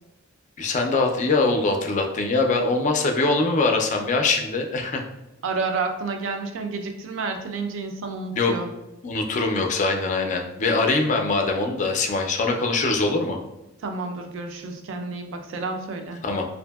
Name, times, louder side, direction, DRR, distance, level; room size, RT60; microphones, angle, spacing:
voice 1, 0.6-5.0 8.3-8.5 9.0-13.4 16.2-16.4, left 3 dB, 40° left, 3 dB, 0.3 m, -23 dB
voice 2, 5.4-8.7 13.8-16.2, right 4 dB, 70° right, 4 dB, 0.4 m, -30 dB
2.6 x 2.5 x 2.2 m, 0.95 s
head